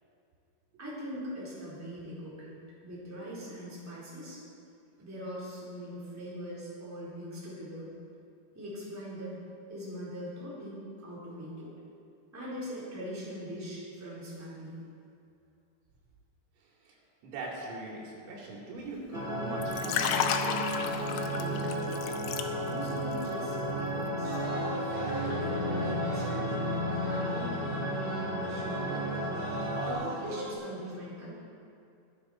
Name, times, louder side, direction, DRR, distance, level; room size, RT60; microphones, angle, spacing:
voice 1, 0.8-2.5 2.8-4.4 5.0-7.9 8.5-9.3 9.7-11.7 12.3-14.8 21.3-22.0 22.7-24.4 25.1-26.5 27.0-29.2 29.8-31.3, equal, 5° right, -8 dB, 3.1 m, -41 dB
voice 2, 16.6-17.0 17.2-20.3, right 2 dB, 85° right, -3 dB, 5.4 m, -41 dB
sound 1, 19.1-29.9, equal, 35° left, 0.8 m, -33 dB
Liquid, 19.6-22.9 23.2-23.5, left 8 dB, 85° left, 3.5 m, -32 dB
sound 2, 24.2-30.5, right 2 dB, 60° right, 2.9 m, -40 dB
23.0 x 9.6 x 4.4 m, 2.5 s
omnidirectional pair, 5.9 m